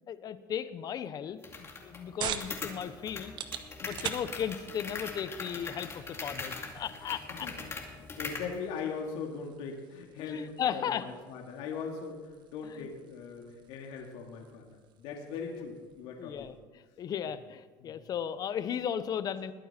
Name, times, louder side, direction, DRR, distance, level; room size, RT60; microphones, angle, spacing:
voice 1, 0.1-3.3 3.8-7.5 10.2-11.0 12.7-12.9 16.2-16.6 17.0-19.5, left 8 dB, 45° left, 13 dB, 0.9 m, -36 dB
sound 1, 1.4-8.5, left 4 dB, 25° left, 2.3 m, -41 dB
sound 2, 1.6-16.7, right 9 dB, 55° right, 1.1 m, -46 dB
voice 2, 7.9-16.5 17.8-18.0, left 5 dB, 70° left, 1 dB, 2.4 m, -40 dB
21.0 x 9.1 x 4.4 m, 1.3 s
supercardioid pair, 110°, 9 cm